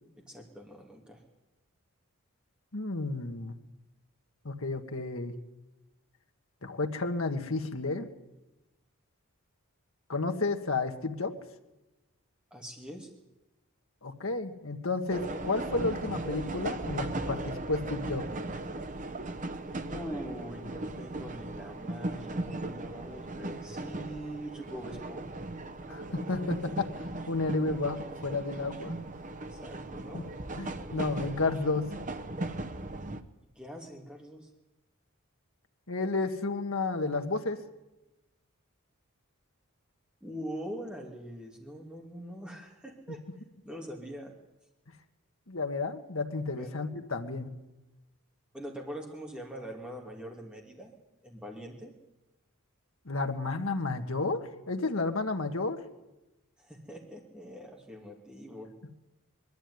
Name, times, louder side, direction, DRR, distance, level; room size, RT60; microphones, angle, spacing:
voice 1, 0.2-1.2 12.5-13.1 19.9-25.4 29.5-30.2 33.6-34.5 40.2-43.2 43.6-44.3 46.5-46.8 48.5-50.9 51.2-51.9 56.6-58.7, equal, 5° right, 0 dB, 2.5 m, -43 dB
voice 2, 2.7-3.5 4.5-5.3 6.6-8.1 10.1-11.3 14.0-18.3 25.9-28.9 30.1-30.2 30.6-31.9 35.9-37.6 45.5-47.5 53.1-55.8, left 3 dB, 70° left, 5 dB, 1.7 m, -32 dB
sound 1, 15.1-33.2, right 2 dB, 35° right, 0.9 m, -38 dB
21.5 x 12.5 x 9.6 m, 1.0 s
head